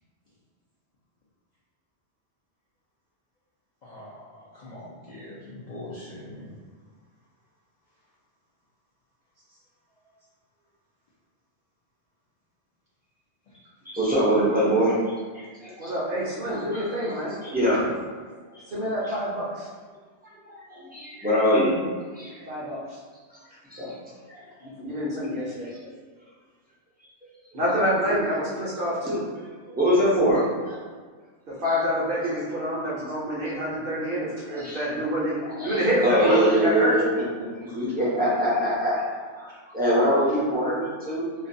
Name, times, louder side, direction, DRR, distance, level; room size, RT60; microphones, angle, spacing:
voice 1, 3.8-6.5 9.5-9.6 17.3-17.4 19.1-19.2 37.7-37.8 39.5-39.6, left 1 dB, 55° left, -9 dB, 0.5 m, -42 dB
voice 2, 13.9-15.1 15.6-15.9 16.7-16.8 17.4-17.8 18.5-18.6 20.4-21.8 22.1-22.4 23.7-23.9 24.3-24.4 28.1-28.2 29.7-30.8 34.6-34.8 35.5-37.0 37.4-39.5 39.7-41.3, equal, 15° right, -9 dB, 0.3 m, -23 dB
voice 3, 15.8-17.3 18.7-19.7 22.5-23.0 24.6-25.7 27.5-29.2 31.6-35.4 35.6-37.0 41.4-41.5, equal, 55° right, -7 dB, 0.7 m, -27 dB
2.5 x 2.2 x 2.6 m, 1.5 s
omnidirectional pair, 1.3 m